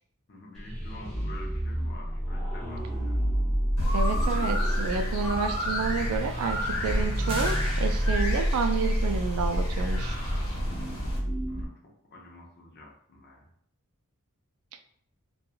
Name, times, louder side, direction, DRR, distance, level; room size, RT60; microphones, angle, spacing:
voice 1, 0.3-3.3 4.3-4.5 11.5-13.5, left 2 dB, 50° left, -1 dB, 0.7 m, -48 dB
sound 1, 0.6-11.7, equal, ahead, 0.9 m, -30 dB
sound 2, 3.8-11.2, equal, 85° left, 0.9 m, -31 dB
voice 2, 3.9-10.2, right 5 dB, 70° right, 7 dB, 0.3 m, -30 dB
sound 3, 7.3-8.7, right 2 dB, 25° right, 0.6 m, -39 dB
3.0 x 2.2 x 2.2 m, 0.68 s
head